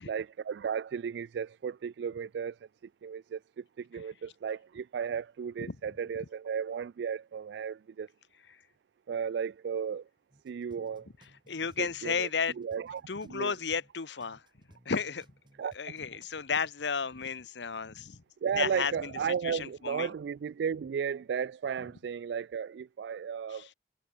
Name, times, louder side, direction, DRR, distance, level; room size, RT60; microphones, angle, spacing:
voice 1, 0.0-2.6 3.0-8.1 9.1-10.1 10.4-11.1 11.8-12.3 12.6-13.5 15.6-15.7 18.4-23.7, right 7 dB, 70° right, 0.3 m, -34 dB
sound 1, 10.3-13.4 13.7-16.3, equal, 25° right, 7.1 m, -61 dB
voice 2, 11.5-12.5 13.1-14.4 14.8-15.3 15.8-18.2 18.5-19.1 19.4-20.1 23.5-23.7, left 6 dB, 80° left, 0.9 m, -33 dB
head